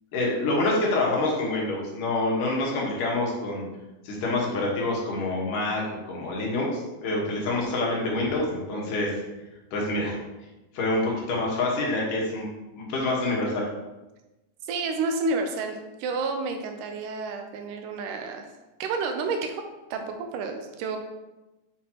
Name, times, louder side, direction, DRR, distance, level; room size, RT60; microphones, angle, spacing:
voice 1, 0.1-3.7 4.0-9.1 9.7-10.2 10.7-12.5 12.8-13.7, left 2 dB, 75° left, -3 dB, 2.9 m, -26 dB
voice 2, 14.6-18.5 18.8-21.0, right 3 dB, 80° right, 5 dB, 2.1 m, -30 dB
7.6 x 5.5 x 2.9 m, 1.1 s
omnidirectional pair, 3.9 m